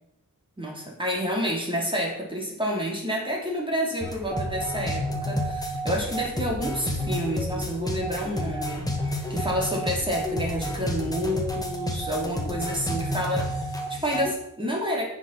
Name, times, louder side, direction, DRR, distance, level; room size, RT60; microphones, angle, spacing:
voice 1, 0.6-15.0, equal, 15° right, -2 dB, 3.0 m, -29 dB
sound 1, 4.0-14.3, equal, 10° left, 1.6 m, -30 dB
9.4 x 7.2 x 5.8 m, 0.84 s
wide cardioid pair, 155°, 36 cm